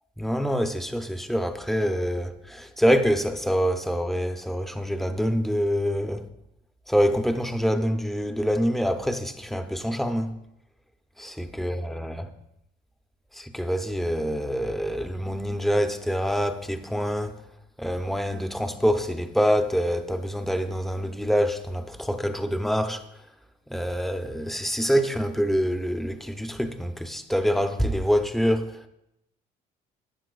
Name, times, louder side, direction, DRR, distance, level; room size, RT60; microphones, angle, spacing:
voice 1, 0.2-6.2 6.9-10.3 11.2-12.3 13.4-17.3 17.8-23.0 23.7-28.8, equal, ahead, 0.7 m, -26 dB
14.5 x 9.6 x 2.4 m
cardioid pair, 110°, 17 cm